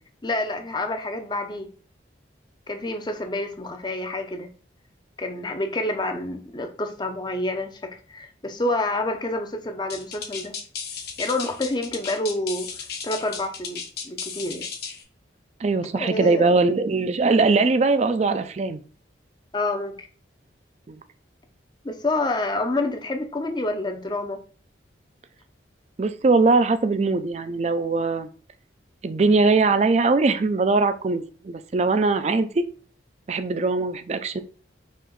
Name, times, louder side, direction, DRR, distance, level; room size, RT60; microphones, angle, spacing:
voice 1, 0.2-1.7 2.7-4.5 5.2-10.5 11.2-14.7 16.0-16.6 19.5-20.1 21.8-24.4, left 2 dB, 25° left, 6 dB, 0.5 m, -28 dB
sound 1, 9.9-15.0, left 6 dB, 55° left, 0.9 m, -35 dB
voice 2, 15.6-18.8 20.9-21.0 26.0-28.3 29.0-32.6 33.3-34.4, right 3 dB, 35° right, 10 dB, 0.3 m, -21 dB
4.3 x 3.0 x 3.8 m, 0.42 s
head